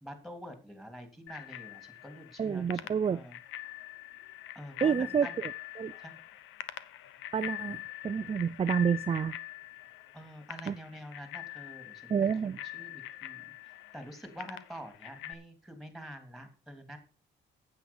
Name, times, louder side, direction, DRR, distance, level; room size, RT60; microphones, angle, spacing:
voice 1, 0.0-3.4 4.5-5.4 6.0-6.2 10.1-12.1 12.4-17.0, equal, ahead, 3.1 m, -47 dB
Bicycle bell, 1.3-15.3, left 14 dB, 85° left, 0.8 m, -44 dB
voice 2, 2.4-3.2 4.8-5.5 5.8-5.9 7.3-9.4 10.7-10.8 12.1-12.6, right 7 dB, 30° right, 0.5 m, -29 dB
9.3 x 8.0 x 5.5 m
cardioid pair, 90°, 20 cm